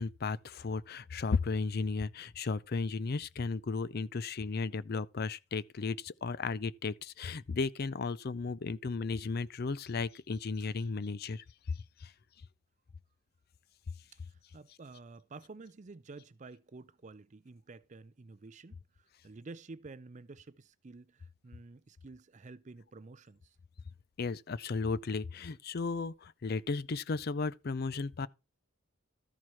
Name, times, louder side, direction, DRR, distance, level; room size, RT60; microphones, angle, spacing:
voice 1, 0.0-12.1 24.2-28.3, left 4 dB, 45° left, 0.5 m, -35 dB
voice 2, 14.5-23.5, right 3 dB, 35° right, 0.5 m, -51 dB
13.5 x 4.7 x 5.6 m
head